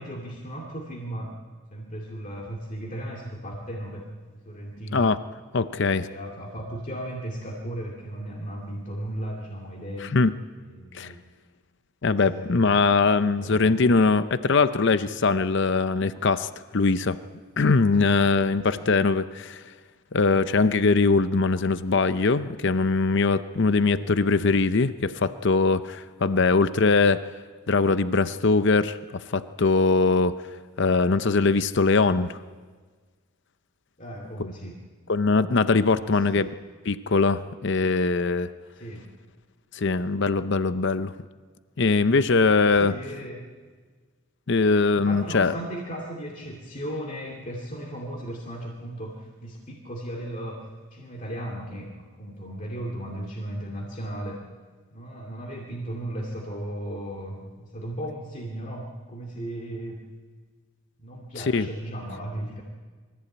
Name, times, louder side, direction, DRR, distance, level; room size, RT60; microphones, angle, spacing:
voice 1, 0.0-1.3 1.7-5.1 6.0-10.2 10.6-11.2 12.0-12.8 13.1-13.9 18.0-18.2 18.7-18.9 24.0-24.1 34.0-34.8 35.9-36.4 38.7-39.0 42.7-43.5 44.9-54.4 54.9-60.0 61.0-62.6, right 1 dB, 35° left, -2 dB, 2.5 m, -36 dB
voice 2, 5.5-6.1 10.1-10.3 10.9-11.1 12.0-17.2 17.6-19.6 20.1-27.2 27.7-30.4 30.8-32.4 34.4-34.5 35.1-36.5 36.9-38.5 39.7-41.1 41.8-42.9 44.5-45.5 61.5-61.7, left 4 dB, 55° left, 13 dB, 0.6 m, -22 dB
23.5 x 15.0 x 8.5 m, 1.5 s
head